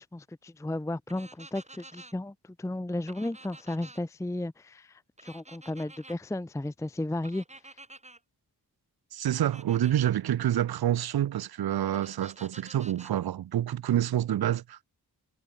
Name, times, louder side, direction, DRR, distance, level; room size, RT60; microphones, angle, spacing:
voice 1, 0.0-7.4, left 1 dB, 10° left, 0.6 m, -34 dB
sound 1, 1.1-2.1 3.1-4.0 5.2-6.2 7.2-8.2 9.3-10.1 11.9-13.1, right 2 dB, 15° right, 1.3 m, -50 dB
voice 2, 9.1-14.9, right 11 dB, 70° right, 0.5 m, -27 dB
wide cardioid pair, 60°, 39 cm